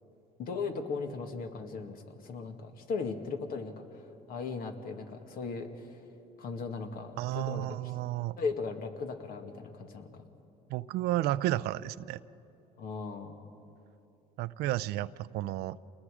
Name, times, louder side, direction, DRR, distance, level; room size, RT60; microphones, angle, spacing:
voice 1, 0.4-6.0 6.4-7.9 8.4-10.2 12.8-13.4, left 4 dB, 65° left, 5 dB, 1.9 m, -37 dB
voice 2, 7.2-8.4 10.7-12.2 14.4-15.8, right 15 dB, 80° right, 17 dB, 0.5 m, -32 dB
28.0 x 20.5 x 4.9 m, 2.8 s
cardioid pair, 90°, 16 cm